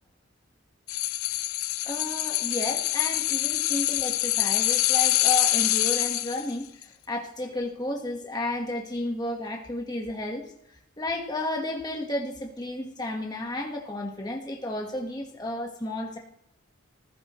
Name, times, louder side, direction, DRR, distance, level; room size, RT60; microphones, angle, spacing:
sound 1, 0.9-6.5 6.8-6.9, left 16 dB, 85° left, 0.5 m, -25 dB
voice 1, 1.8-10.5 11.0-16.2, left 1 dB, 20° left, 0 dB, 1.5 m, -32 dB
20.0 x 15.5 x 3.2 m, 0.78 s
head